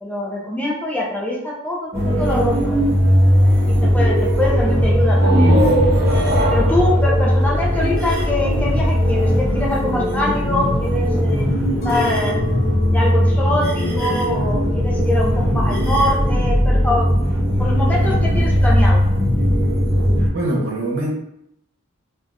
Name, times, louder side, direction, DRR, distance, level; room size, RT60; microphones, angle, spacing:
voice 1, 0.0-2.7 3.7-5.6 6.5-11.6 11.8-12.4 12.9-17.1 17.6-19.0, left 2 dB, 10° left, -4 dB, 0.6 m, -24 dB
sound 1, 1.9-20.3, equal, 15° right, 1.0 m, -18 dB
sound 2, 5.0-8.7, right 1 dB, 50° right, 0.8 m, -22 dB
Chink clink, 11.8-16.2 16.6-17.2, left 1 dB, 50° left, 0.7 m, -37 dB
voice 2, 20.3-21.1, right 1 dB, 75° right, -2 dB, 1.0 m, -22 dB
3.6 x 2.6 x 2.6 m, 0.77 s
head